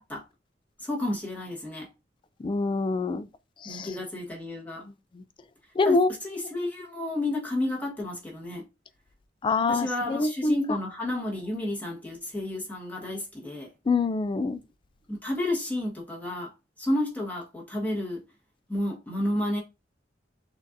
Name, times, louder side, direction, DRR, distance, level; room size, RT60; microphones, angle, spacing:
voice 1, 0.8-1.9 3.6-4.9 5.8-8.7 9.7-13.7 15.1-16.5 16.8-18.2 18.7-19.6, left 1 dB, 10° left, 1.3 m, -31 dB
voice 2, 2.4-3.3 3.6-3.9 5.8-6.1 9.4-10.6 13.9-14.6, left 3 dB, 30° left, 0.3 m, -25 dB
6.2 x 2.6 x 2.6 m
head